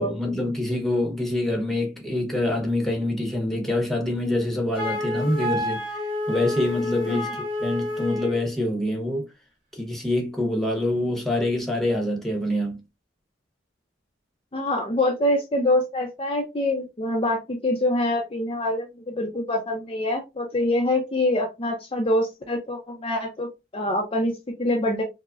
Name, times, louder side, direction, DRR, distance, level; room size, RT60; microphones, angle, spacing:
voice 1, 0.0-5.8 6.3-9.3 9.7-12.8, left 1 dB, ahead, 0.9 m, -25 dB
Wind instrument woodwind instrument, 4.7-8.5, left 1 dB, 30° right, 1.7 m, -29 dB
voice 2, 14.5-23.5 23.7-25.0, left 1 dB, 30° left, 0.5 m, -25 dB
4.6 x 2.0 x 2.4 m
head